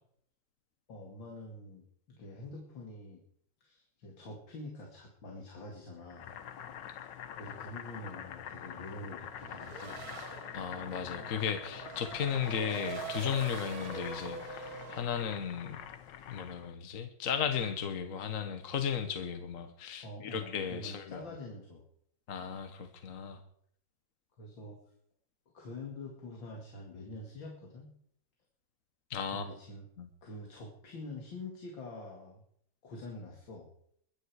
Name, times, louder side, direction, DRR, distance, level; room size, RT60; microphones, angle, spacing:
voice 1, 0.9-3.2 3.6-6.3 6.9-10.1 20.0-21.8 24.4-24.8 25.5-27.9 29.3-29.9 30.2-32.4 32.8-33.7, left 2 dB, 90° left, 0 dB, 3.0 m, -46 dB
Boiling, 6.1-16.7, left 9 dB, 75° left, 1.6 m, -45 dB
Race car auto racing / Accelerating revving vroom, 9.4-15.0, right 6 dB, 55° right, 1.5 m, -44 dB
voice 2, 10.5-15.8 16.3-21.2 22.3-23.4 29.1-29.5 30.0-30.1, left 7 dB, 50° left, 7 dB, 1.4 m, -35 dB
22.5 x 9.6 x 4.9 m, 0.67 s
omnidirectional pair, 2.0 m